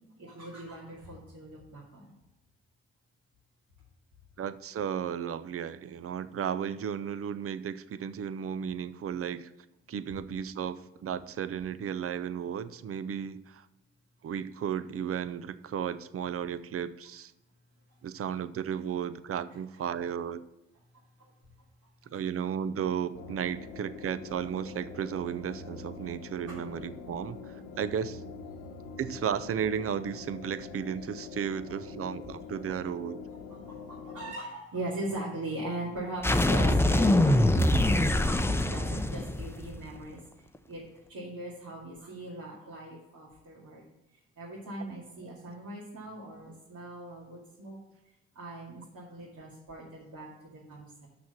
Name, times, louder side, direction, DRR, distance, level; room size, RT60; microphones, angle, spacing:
voice 1, 0.2-2.1 26.5-26.6 33.5-40.2 40.7-40.8 41.1-43.8 44.4-47.8 48.4-51.1, right 1 dB, 65° right, -6 dB, 2.3 m, -40 dB
voice 2, 4.4-9.5 9.9-13.6 14.2-17.3 18.0-20.4 22.1-28.2 29.0-33.2, right 8 dB, 45° right, 14 dB, 0.6 m, -34 dB
sound 1, 23.1-34.3, left 4 dB, 75° left, 1.0 m, -44 dB
sound 2, 36.2-39.9, left 1 dB, 10° left, 0.6 m, -24 dB
6.1 x 6.0 x 7.0 m, 0.98 s
hypercardioid pair, 50°, 31 cm